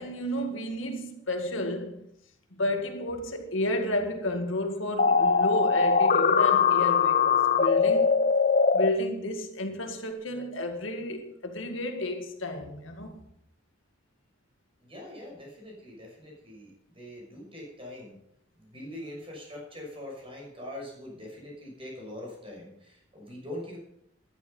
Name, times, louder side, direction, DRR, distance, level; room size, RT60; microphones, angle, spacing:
voice 1, 0.0-2.0 2.5-8.2 8.7-13.2, left 1 dB, 75° left, 2.1 m, -32 dB
sound 1, 5.0-8.9, left 5 dB, 45° left, 0.7 m, -21 dB
voice 2, 14.8-18.1 18.6-23.8, left 1 dB, 30° right, 6.3 m, -43 dB
14.5 x 11.5 x 5.5 m
head